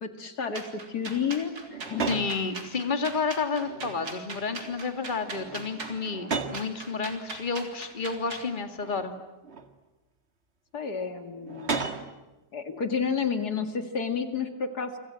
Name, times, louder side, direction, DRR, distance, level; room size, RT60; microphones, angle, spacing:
voice 1, 0.0-2.1 10.7-11.8 12.5-15.0, left 6 dB, 65° left, 7 dB, 2.6 m, -31 dB
sound 1, 0.5-8.5, right 3 dB, 65° right, 4.0 m, -40 dB
sound 2, 1.7-2.4 3.4-4.1 4.5-4.8 5.2-6.7 7.5-7.6 8.8-9.7 11.4-12.2, right 4 dB, 40° right, 2.1 m, -35 dB
voice 2, 2.1-9.1, left 4 dB, 30° left, 7 dB, 2.3 m, -30 dB
29.5 x 26.0 x 7.7 m, 1.1 s
omnidirectional pair, 1.8 m